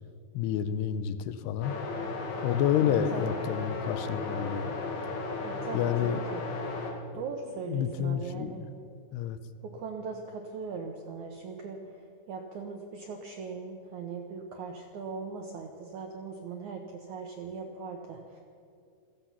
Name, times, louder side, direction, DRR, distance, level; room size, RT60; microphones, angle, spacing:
voice 1, 0.3-1.7 2.4-4.7 5.7-6.2 7.7-8.6 9.1-9.4, left 9 dB, 90° left, 12 dB, 2.7 m, -29 dB
sound 1, 1.6-6.9, left 3 dB, 65° left, 3.6 m, -35 dB
voice 2, 2.9-3.4 5.4-6.4 7.1-8.6 9.6-18.4, right 5 dB, 80° right, 2 dB, 1.7 m, -40 dB
16.5 x 14.0 x 5.8 m, 2.4 s
omnidirectional pair, 4.7 m